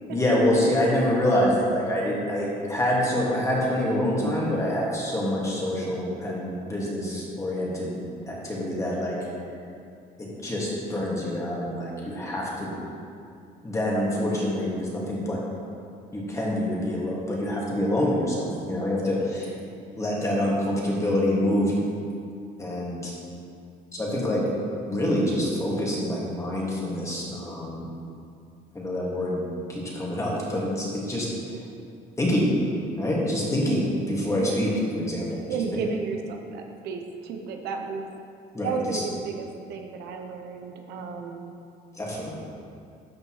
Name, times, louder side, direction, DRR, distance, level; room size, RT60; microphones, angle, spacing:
voice 1, 0.1-9.2 10.2-12.7 13.6-15.4 16.1-19.5 20.0-21.8 22.6-23.1 23.9-24.4 24.8-27.8 28.7-29.4 29.7-31.6 32.2-32.5 33.0-35.4 35.7-35.8 38.5-39.0 41.9-42.4, left 1 dB, 20° left, -5 dB, 2.0 m, -26 dB
voice 2, 35.5-38.1 38.6-41.5, right 5 dB, 80° right, 3 dB, 0.8 m, -33 dB
12.5 x 5.3 x 3.2 m, 2.5 s
cardioid pair, 110°, 17 cm